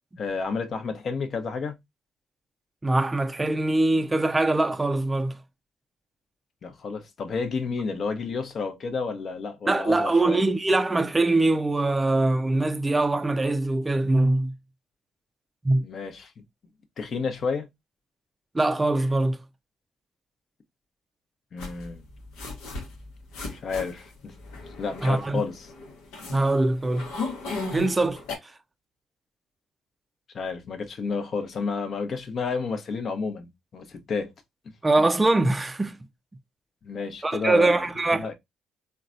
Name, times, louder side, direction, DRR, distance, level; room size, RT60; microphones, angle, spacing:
voice 1, 0.2-1.7 6.6-10.4 15.8-16.3 17.0-17.7 21.5-22.0 23.5-24.3 24.8-25.7 30.3-34.3 36.8-37.9 38.2-38.3, left 4 dB, 55° left, 0.8 m, -31 dB
voice 2, 2.8-5.3 9.7-14.5 15.6-15.8 18.5-19.4 25.0-25.4 26.3-27.1 27.7-28.5 34.8-36.0 37.2-38.3, right 2 dB, 20° right, 0.4 m, -23 dB
sound 1, 21.6-28.4, left 3 dB, 80° left, 0.9 m, -36 dB
3.8 x 2.3 x 2.5 m
supercardioid pair, 55°, 0 cm